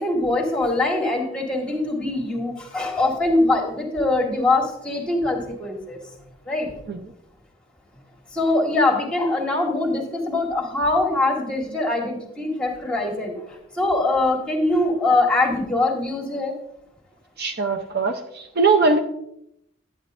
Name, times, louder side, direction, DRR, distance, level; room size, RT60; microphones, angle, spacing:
voice 1, 0.0-6.0 6.5-6.7 8.3-13.3 13.8-16.5, left 2 dB, 5° left, 0 dB, 1.6 m, -22 dB
voice 2, 17.4-19.0, right 4 dB, 55° right, 5 dB, 0.6 m, -21 dB
11.0 x 8.7 x 2.5 m, 0.77 s
head